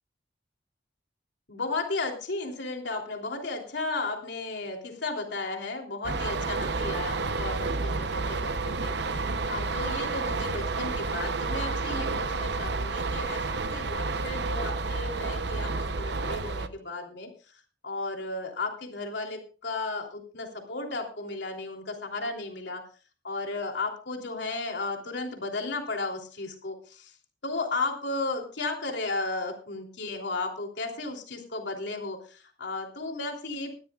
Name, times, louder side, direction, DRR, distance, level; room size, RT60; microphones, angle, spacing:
voice 1, 1.5-22.8 23.2-27.1 27.4-33.7, left 3 dB, 70° left, 2 dB, 3.3 m, -34 dB
sound 1, 6.0-16.7, right 3 dB, 65° right, 0.8 m, -30 dB
20.5 x 13.0 x 2.4 m, 0.36 s
head